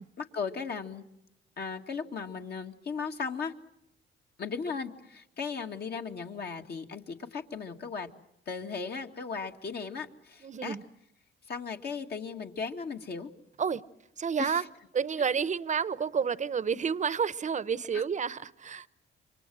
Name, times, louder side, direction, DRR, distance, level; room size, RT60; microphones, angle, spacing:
voice 1, 0.2-1.0 1.6-3.5 4.4-8.1 8.5-10.8 11.5-13.3 14.4-14.6 17.9-18.0, left 5 dB, 55° left, 2.2 m, -36 dB
voice 2, 10.4-10.8 13.6-13.8 14.2-14.7 14.9-18.9, right 6 dB, 40° right, 0.9 m, -30 dB
28.0 x 24.5 x 6.3 m
cardioid pair, 90°, 20 cm